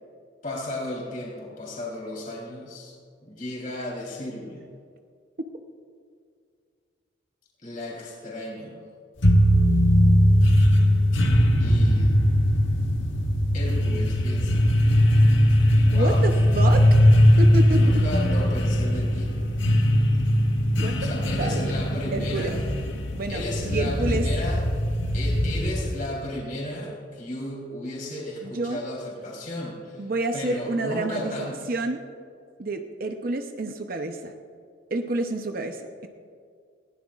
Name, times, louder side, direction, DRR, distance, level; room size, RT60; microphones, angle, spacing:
voice 1, 0.4-2.9 3.2-4.6 7.6-8.8 11.6-12.1 13.5-14.7 15.8-16.3 17.7-19.3 21.0-22.5 23.3-24.6 25.1-30.1 30.3-31.7, left 1 dB, 45° left, -4 dB, 3.7 m, -34 dB
sound 1, 9.2-26.0, equal, 80° left, 1.5 m, -20 dB
voice 2, 15.9-16.8 17.4-18.0 20.8-21.1 21.4-21.6 22.1-22.5 23.1-24.3 28.4-28.8 30.0-32.0 32.6-34.3 34.9-36.1, right 2 dB, 50° right, 5 dB, 0.7 m, -29 dB
20.0 x 15.5 x 2.5 m, 2.2 s
head